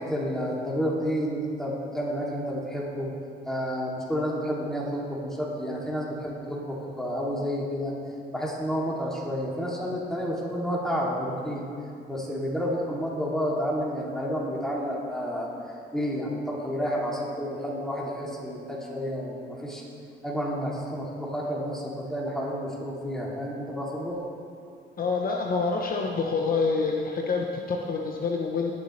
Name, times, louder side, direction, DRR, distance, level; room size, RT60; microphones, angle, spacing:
voice 1, 0.0-3.1 3.4-7.9 8.3-11.7 12.1-15.5 15.9-19.8 20.2-24.2, equal, ahead, -4 dB, 2.6 m, -30 dB
voice 2, 25.0-28.7, left 4 dB, 45° left, 0 dB, 0.9 m, -27 dB
19.0 x 6.9 x 3.2 m, 2.5 s
cardioid pair, 90°, 20 cm